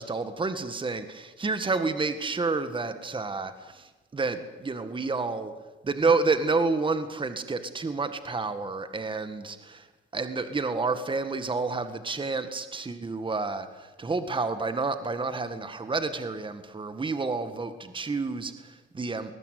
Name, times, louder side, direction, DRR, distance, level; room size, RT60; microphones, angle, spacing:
voice 1, 0.0-5.5 5.8-9.9 10.1-19.3, right 3 dB, 25° right, 10 dB, 1.8 m, -29 dB
20.5 x 19.5 x 9.4 m, 1.2 s
cardioid pair, 90°, 20 cm